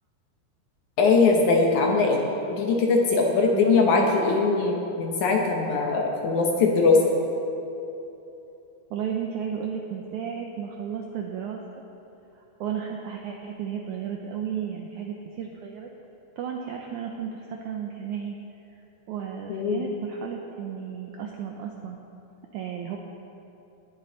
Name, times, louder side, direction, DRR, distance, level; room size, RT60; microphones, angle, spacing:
voice 1, 1.0-7.0 19.5-19.9, left 4 dB, 65° left, 0 dB, 2.1 m, -21 dB
voice 2, 3.5-4.1 8.9-11.6 12.6-15.9 16.4-18.4 18.7-18.8 19.1-22.0 22.5-23.0, right 8 dB, 85° right, 2 dB, 1.7 m, -33 dB
18.5 x 10.5 x 3.9 m, 2.9 s
omnidirectional pair, 4.3 m